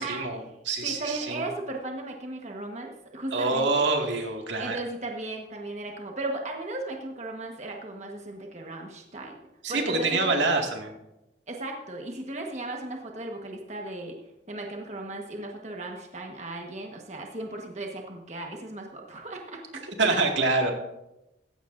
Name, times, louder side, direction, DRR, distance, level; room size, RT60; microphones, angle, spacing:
voice 1, 0.0-1.4 3.3-4.8 9.6-10.9 20.0-20.7, right 3 dB, 85° right, 2 dB, 2.1 m, -26 dB
voice 2, 0.8-3.9 4.6-9.4 9.7-10.4 11.5-14.1 14.5-20.2, right 2 dB, 40° right, 1 dB, 1.3 m, -36 dB
15.5 x 15.0 x 2.6 m, 0.93 s
head